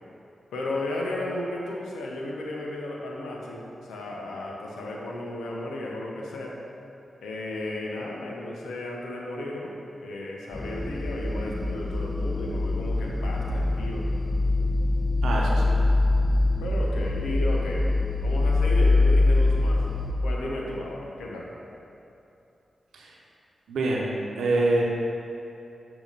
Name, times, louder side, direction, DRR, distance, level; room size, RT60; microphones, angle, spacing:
voice 1, 0.5-6.6 7.2-9.8 10.0-14.1 16.6-17.9 18.2-19.8 20.2-21.5, left 1 dB, 90° left, -2 dB, 0.8 m, -34 dB
sound 1, 10.5-20.1, left 2 dB, 35° left, 1.1 m, -24 dB
voice 2, 15.2-15.7 23.7-24.8, right 2 dB, 85° right, -3 dB, 0.8 m, -25 dB
7.1 x 2.9 x 5.3 m, 2.8 s
supercardioid pair, 40°, 0 cm